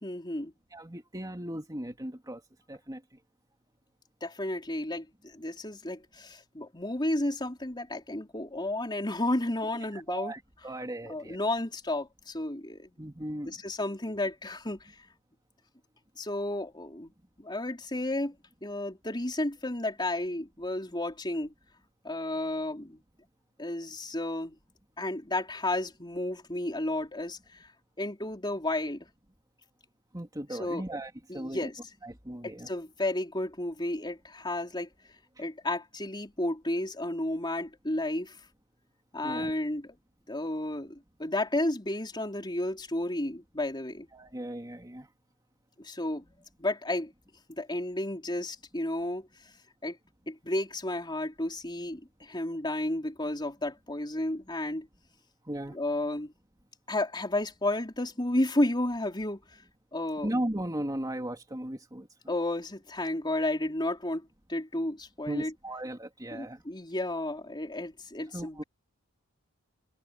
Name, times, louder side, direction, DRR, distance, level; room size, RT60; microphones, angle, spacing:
voice 1, 0.0-0.5 4.2-10.3 11.1-12.9 13.5-14.9 16.2-17.1 17.4-18.3 18.6-21.5 22.0-23.0 23.6-24.5 25.0-27.6 28.0-29.1 30.5-30.9 31.3-31.8 32.4-34.9 35.4-38.4 39.1-40.0 40.3-44.1 45.8-47.1 47.5-49.3 49.8-50.0 50.3-54.9 55.7-56.3 56.9-59.4 59.9-60.3 62.3-65.5 66.3-68.6, left 1 dB, 20° left, 4.0 m, -32 dB
voice 2, 0.7-2.4 2.7-3.0 9.9-11.4 13.0-13.6 30.1-31.7 32.0-32.7 39.2-39.5 44.1-45.1 55.4-55.8 60.2-62.1 65.3-66.6 68.3-68.6, right 1 dB, 15° right, 2.9 m, -36 dB
head